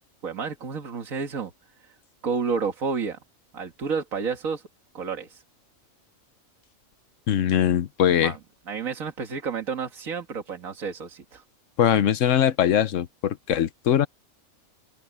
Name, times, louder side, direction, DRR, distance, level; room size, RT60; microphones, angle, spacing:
voice 1, 0.2-1.5 1.8-2.0 2.2-3.2 3.5-4.6 4.9-5.4 8.2-8.4 8.7-11.4, right 5 dB, 85° right, 2.1 m, -30 dB
voice 2, 7.3-8.3 11.8-14.1, left 10 dB, 70° left, 1.2 m, -21 dB
omnidirectional pair, 1.4 m